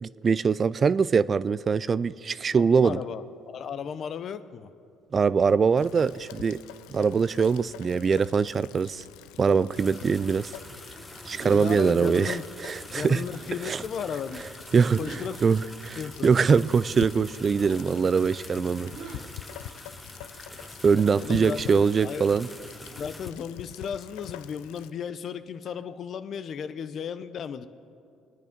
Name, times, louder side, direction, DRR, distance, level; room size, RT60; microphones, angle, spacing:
voice 1, 0.0-3.0 5.1-6.6 6.9-9.0 9.4-10.5 11.3-13.2 13.6-13.8 14.7-15.0 15.4-18.9 20.8-22.5, right 5 dB, 35° right, 17 dB, 0.4 m, -23 dB
voice 2, 2.8-4.7 11.4-12.4 12.9-14.5 15.0-15.4 16.0-16.5 21.2-22.3 22.9-27.7, left 7 dB, 55° left, 12 dB, 0.8 m, -35 dB
Rain, 5.8-24.9, left 12 dB, 85° left, 0.4 m, -45 dB
sound 1, 9.7-23.3, left 1 dB, 10° left, 0.9 m, -45 dB
Disappointed and happily surprised creature, 11.2-12.0 13.2-13.6 15.0-15.4 17.6-17.9 18.8-19.4, right 4 dB, 70° right, 2.6 m, -42 dB
24.0 x 9.6 x 5.3 m, 2.5 s
supercardioid pair, 80°, 0 cm